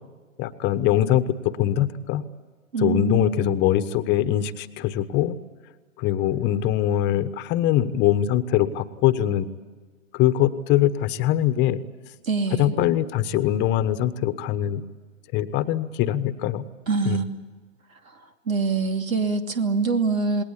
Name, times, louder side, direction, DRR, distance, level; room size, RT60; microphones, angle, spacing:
voice 1, 0.4-1.2 1.6-2.2 2.8-5.4 6.0-9.5 10.1-11.8 12.6-14.8 15.3-16.6 17.0-17.2, left 12 dB, 25° left, 12 dB, 1.2 m, -22 dB
voice 2, 2.7-3.6 12.2-12.8 16.9-17.3 18.5-20.4, right 4 dB, 80° right, 6 dB, 2.8 m, -24 dB
28.5 x 20.0 x 8.6 m, 1.4 s
hypercardioid pair, 120°, 40 cm